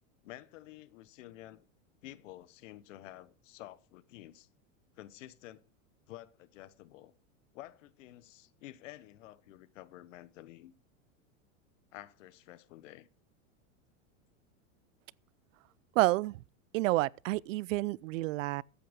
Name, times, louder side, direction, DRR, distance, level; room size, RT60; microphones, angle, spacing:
voice 1, 0.2-1.6 2.0-4.5 5.0-5.6 6.1-7.1 7.5-10.7 11.9-13.1, left 15 dB, 70° left, 1.2 m, -50 dB
voice 2, 16.0-16.4 16.7-18.6, right 19 dB, 75° right, 0.5 m, -29 dB
13.5 x 8.8 x 5.3 m
supercardioid pair, 145°, 39 cm